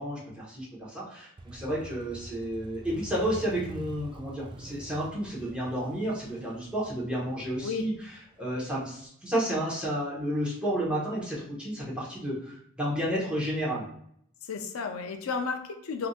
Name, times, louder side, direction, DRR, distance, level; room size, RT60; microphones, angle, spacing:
voice 1, 0.0-7.9 8.4-13.9, equal, 5° right, -7 dB, 1.3 m, -31 dB
Motorcycle, 1.4-9.0, right 1 dB, 20° right, 0.3 m, -46 dB
voice 2, 14.4-16.1, left 5 dB, 70° left, 5 dB, 0.5 m, -33 dB
3.6 x 2.7 x 2.4 m, 0.68 s
head